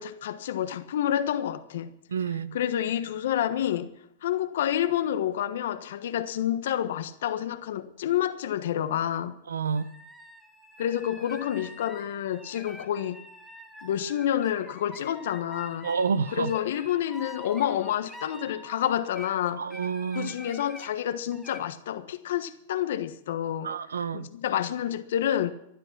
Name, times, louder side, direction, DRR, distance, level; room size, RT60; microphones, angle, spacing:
voice 1, 0.0-1.9 2.5-3.9 4.2-9.3 10.8-13.2 13.8-15.9 16.3-19.6 20.1-23.7 24.1-25.5, left 10 dB, 70° left, 1.3 m, -28 dB
voice 2, 2.1-2.6 9.5-9.9 15.8-16.5 19.5-20.3 23.6-24.3, right 6 dB, 85° right, 0.8 m, -29 dB
sound 1, 9.8-19.3 19.7-20.9 21.3-21.6, equal, ahead, 2.6 m, -46 dB
15.0 x 11.5 x 6.0 m
hypercardioid pair, 110°, 0 cm